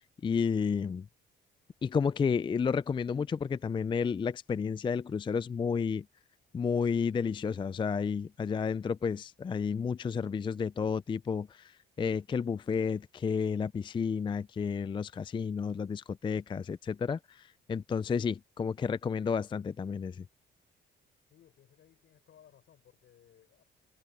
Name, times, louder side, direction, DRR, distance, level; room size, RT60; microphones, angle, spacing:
voice 1, 0.2-1.1 1.8-6.1 6.5-20.2, left 6 dB, 25° left, 0.4 m, -31 dB
voice 2, 21.3-23.6, left 10 dB, 70° left, 6.7 m, -61 dB
cardioid pair, 90°, 20 cm